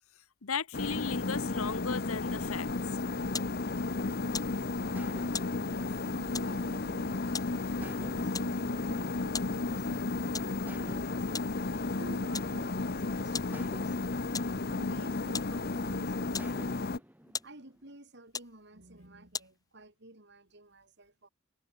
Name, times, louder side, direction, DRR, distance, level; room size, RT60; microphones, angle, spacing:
voice 1, 0.4-2.7 10.2-10.3 14.5-14.6, left 5 dB, 85° left, 1.1 m, -36 dB
sound 1, 0.7-17.0, left 3 dB, 45° left, 0.8 m, -33 dB
sound 2, 5.0-7.2 7.8-10.0 10.7-12.9 13.5-15.8 16.4-18.0, equal, 10° right, 7.8 m, -54 dB
voice 2, 5.4-11.2 12.0-17.1 17.4-21.3, right 1 dB, 55° right, 3.8 m, -52 dB
sound 3, 17.0-19.8, left 5 dB, 15° left, 3.8 m, -44 dB
head